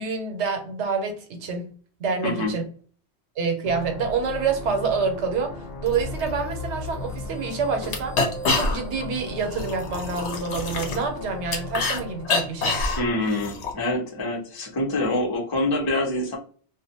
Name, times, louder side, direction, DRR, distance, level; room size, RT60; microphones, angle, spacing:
voice 1, 0.0-1.7 2.0-2.6 3.4-8.2 8.5-12.8, right 5 dB, 85° right, 1.0 m, -27 dB
voice 2, 2.2-2.5 13.0-16.4, left 2 dB, 30° left, 0.5 m, -25 dB
sound 1, 3.6-14.2, left 2 dB, 65° left, 0.7 m, -37 dB
sound 2, 7.1-7.2 7.5-7.6 7.8-9.1 9.4-12.0 12.2-13.7, left 3 dB, 90° left, 1.0 m, -26 dB
2.5 x 2.1 x 2.7 m
omnidirectional pair, 1.1 m